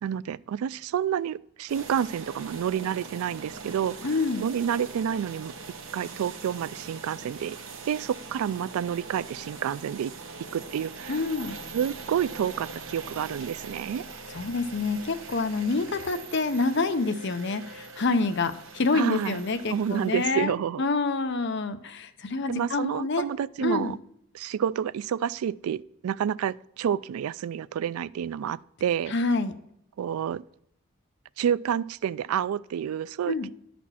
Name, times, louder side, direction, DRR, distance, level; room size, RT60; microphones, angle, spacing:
voice 1, 0.0-4.0 4.4-5.5 5.9-7.6 7.9-10.1 10.5-11.2 11.7-14.1 18.9-19.4 19.7-20.8 22.5-24.0 24.3-29.2 30.0-30.4 31.4-33.5, right 9 dB, 85° right, 0.3 m, -29 dB
sound 1, 1.7-20.2, right 4 dB, 65° right, 1.0 m, -42 dB
voice 2, 4.0-4.4 11.1-11.6 14.3-23.3 23.6-24.0 29.1-29.5 33.3-33.5, left 3 dB, 55° left, 0.7 m, -27 dB
11.0 x 4.3 x 5.7 m
head